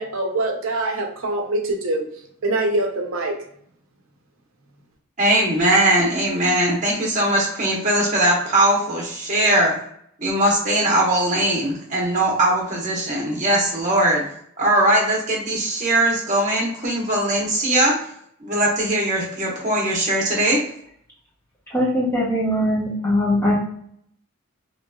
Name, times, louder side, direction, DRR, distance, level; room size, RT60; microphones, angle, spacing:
voice 1, 0.0-2.1 2.4-3.4, right 2 dB, 80° right, 2 dB, 0.7 m, -24 dB
voice 2, 5.2-9.7 10.2-14.2 14.6-17.9 18.4-20.6, right 1 dB, 35° right, -2 dB, 1.0 m, -20 dB
voice 3, 21.7-23.6, left 1 dB, 10° left, -7 dB, 1.2 m, -21 dB
3.1 x 2.9 x 2.3 m, 0.67 s
head